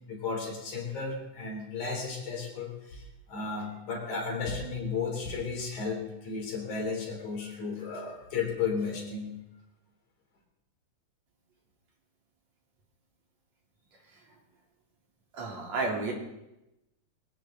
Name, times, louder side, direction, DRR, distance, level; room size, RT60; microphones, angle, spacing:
voice 1, 0.1-9.4, left 5 dB, 90° left, 0 dB, 5.0 m, -34 dB
voice 2, 15.3-16.1, right 3 dB, 65° right, -1 dB, 4.4 m, -32 dB
21.5 x 16.0 x 3.9 m, 0.92 s
omnidirectional pair, 3.3 m